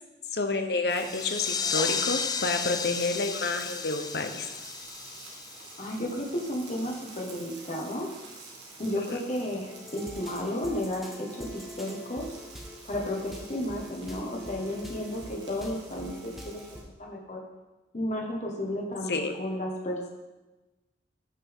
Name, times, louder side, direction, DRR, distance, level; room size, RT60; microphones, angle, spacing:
voice 1, 0.3-4.5 9.1-9.2 19.1-19.3, left 3 dB, 60° left, 6 dB, 0.9 m, -29 dB
sound 1, 0.9-16.8, right 3 dB, 75° right, 2.1 m, -48 dB
sound 2, 1.0-6.3, left 6 dB, 20° left, 0.3 m, -33 dB
voice 2, 5.8-8.1 8.8-12.3 12.8-17.4 17.9-20.1, left 1 dB, 40° left, -1 dB, 1.5 m, -33 dB
sound 3, 9.7-16.8, equal, ahead, 0.9 m, -44 dB
14.5 x 5.8 x 3.6 m, 1.1 s
head